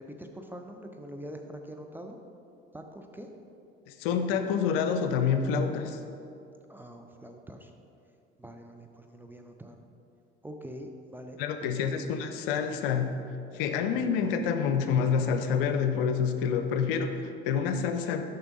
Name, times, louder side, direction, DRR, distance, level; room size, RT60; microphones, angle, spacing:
voice 1, 0.0-2.2 2.7-3.3 6.7-7.7 8.4-9.8 10.4-12.0, equal, 5° right, 3 dB, 0.5 m, -44 dB
voice 2, 3.9-6.0 11.4-13.2 13.5-18.2, left 6 dB, 65° left, 7 dB, 0.6 m, -27 dB
6.8 x 5.6 x 3.9 m, 2.6 s
figure-of-eight pair, 65°, 30 cm